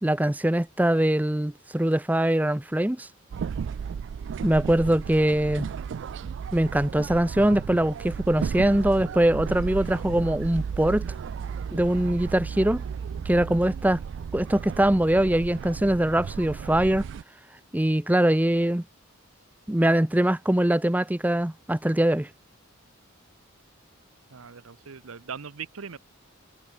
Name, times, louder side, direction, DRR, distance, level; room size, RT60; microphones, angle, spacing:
voice 1, 0.0-3.1 4.4-5.7 6.5-11.1 11.7-12.8 13.3-14.0 14.3-17.0 17.7-18.8 19.7-22.3, right 1 dB, 10° right, 0.6 m, -22 dB
sound 1, 3.3-17.2, right 6 dB, 60° right, 0.3 m, -34 dB
voice 2, 24.3-26.0, right 6 dB, 85° right, 0.8 m, -40 dB
head